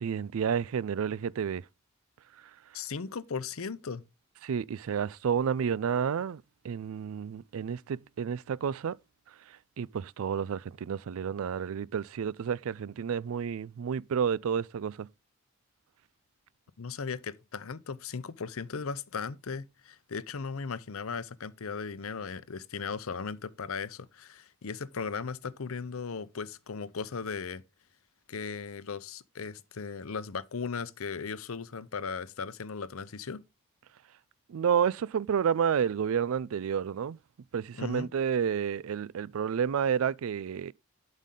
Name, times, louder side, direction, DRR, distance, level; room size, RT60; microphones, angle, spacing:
voice 1, 0.0-1.6 4.4-9.0 9.8-15.1 34.5-37.2 37.5-40.7, right 7 dB, 70° right, 0.4 m, -30 dB
voice 2, 2.7-4.0 16.8-27.6 28.3-33.4 37.7-38.1, left 5 dB, 70° left, 0.7 m, -37 dB
11.5 x 5.4 x 3.7 m
head